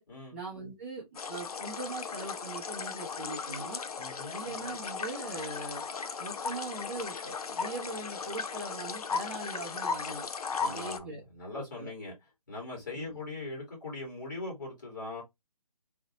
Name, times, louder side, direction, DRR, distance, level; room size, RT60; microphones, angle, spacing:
voice 1, 0.3-3.8 4.3-5.8 6.2-10.3 10.6-11.2 11.5-11.9 12.9-13.2, right 3 dB, 25° right, 0.6 m, -41 dB
sound 1, 1.1-11.0, left 5 dB, 70° left, 0.5 m, -36 dB
voice 2, 4.0-4.4 10.6-12.1 12.5-15.2, left 2 dB, 30° left, 1.5 m, -40 dB
2.9 x 2.0 x 2.6 m
hypercardioid pair, 175°, 20 cm